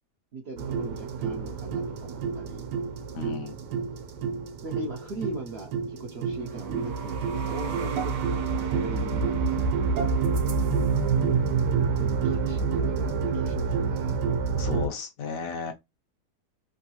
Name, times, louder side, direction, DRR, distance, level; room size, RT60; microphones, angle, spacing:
voice 1, 0.3-2.6 4.6-9.7 11.9-14.2, right 2 dB, 65° right, 0.6 m, -40 dB
sound 1, 0.6-14.9, right 5 dB, 90° right, 1.3 m, -28 dB
voice 2, 3.1-3.5 14.6-15.7, left 5 dB, 65° left, 1.0 m, -33 dB
3.6 x 2.3 x 2.8 m
omnidirectional pair, 1.8 m